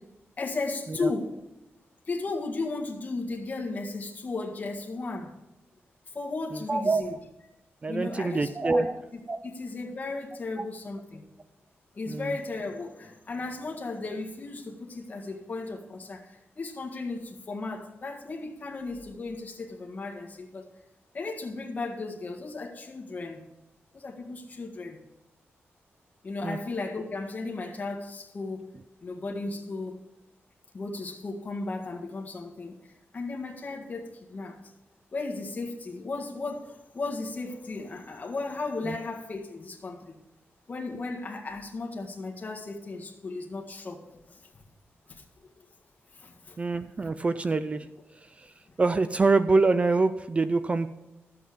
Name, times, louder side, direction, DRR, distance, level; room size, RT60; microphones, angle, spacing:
voice 1, 0.4-1.3 2.1-5.3 6.1-7.2 7.9-8.9 9.4-11.2 11.9-20.7 21.1-23.4 23.9-25.0 26.2-28.7 29.0-30.0 30.7-34.6 35.1-40.2 40.7-44.5 45.1-45.2 46.1-46.6, left 3 dB, 40° left, 2 dB, 1.7 m, -35 dB
voice 2, 6.5-7.2 7.8-9.0 9.3-9.5 10.6-10.7 12.1-12.4 26.4-26.6 38.8-39.0 46.6-47.9 48.4-48.5 48.8-50.9, right 3 dB, 30° right, 12 dB, 0.4 m, -25 dB
13.0 x 7.8 x 5.1 m, 0.99 s
wide cardioid pair, 150°, 4 cm